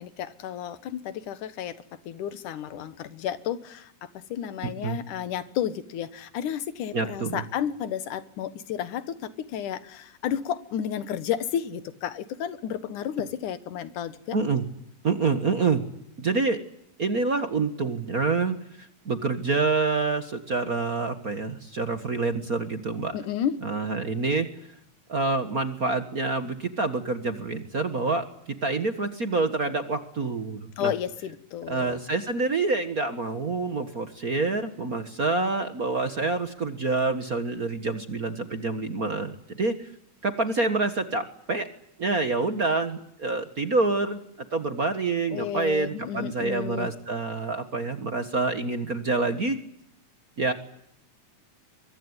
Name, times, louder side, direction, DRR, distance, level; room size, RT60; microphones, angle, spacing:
voice 1, 0.0-1.8 2.1-14.4 23.1-23.5 30.8-32.0 45.3-46.9, left 9 dB, 90° left, 14 dB, 2.9 m, -32 dB
voice 2, 4.6-5.0 6.9-7.4 14.3-14.6 15.0-15.8 16.2-16.6 17.0-23.1 23.6-24.5 25.1-28.3 28.6-30.9 31.7-39.9 40.2-41.7 42.0-44.2 44.5-49.6 50.4-50.5, right 3 dB, 40° right, 9 dB, 1.4 m, -27 dB
24.0 x 23.0 x 9.7 m, 0.74 s
omnidirectional pair, 3.5 m